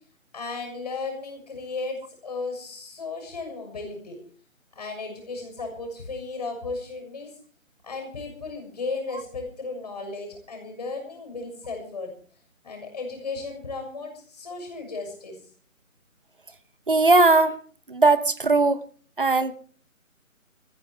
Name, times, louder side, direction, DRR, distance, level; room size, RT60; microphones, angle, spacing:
voice 1, 0.3-2.0 2.2-4.2 4.7-7.3 7.8-12.1 12.6-15.3, left 3 dB, 30° left, 3 dB, 6.5 m, -35 dB
voice 2, 16.9-17.6 17.9-18.8 19.2-19.5, right 3 dB, 40° right, 15 dB, 1.0 m, -19 dB
18.5 x 14.5 x 4.6 m, 0.43 s
hypercardioid pair, 180°, 41 cm